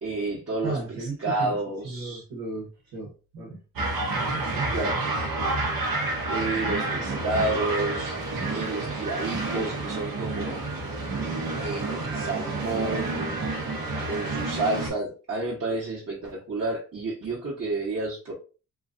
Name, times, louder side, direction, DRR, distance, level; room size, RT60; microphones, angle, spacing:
voice 1, 0.0-2.2 4.7-5.0 6.3-8.1 8.5-10.7 11.6-13.4 14.0-18.3, right 2 dB, 45° right, 1.1 m, -30 dB
voice 2, 0.6-1.6 1.8-3.6 4.1-5.0, right 3 dB, 85° right, 1.2 m, -35 dB
sound 1, 3.8-14.9, right 2 dB, 70° right, 1.0 m, -29 dB
3.0 x 2.6 x 2.5 m
cardioid pair, 60°, 36 cm